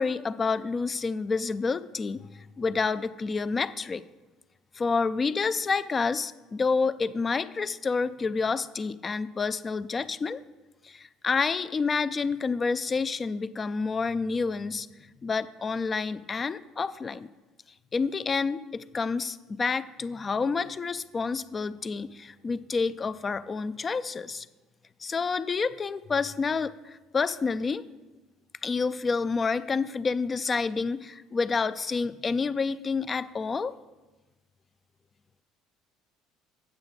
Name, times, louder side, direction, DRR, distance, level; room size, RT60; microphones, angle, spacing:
voice 1, 0.0-4.0 4.7-10.4 10.8-14.9 15.2-17.3 17.9-24.5 25.0-27.8 28.6-33.7, left 4 dB, 30° left, 14 dB, 0.4 m, -29 dB
8.8 x 6.9 x 4.0 m, 1.2 s
hypercardioid pair, 60°, 0 cm